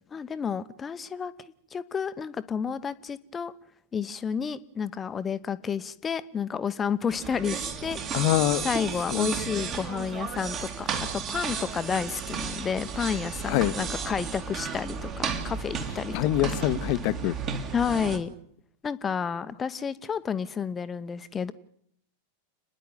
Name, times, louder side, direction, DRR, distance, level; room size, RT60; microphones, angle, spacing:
voice 1, 0.1-1.3 1.7-3.5 3.9-8.3 8.6-16.1 17.7-18.3 18.8-21.5, left 7 dB, 20° left, 14 dB, 1.0 m, -31 dB
sound 1, 7.1-18.2, right 6 dB, 30° right, 2.4 m, -33 dB
voice 2, 8.1-8.6 9.1-9.3 13.5-13.7 16.1-17.3, left 16 dB, 45° left, 14 dB, 1.1 m, -24 dB
29.5 x 10.5 x 9.2 m, 0.69 s
figure-of-eight pair, 90°, 0 cm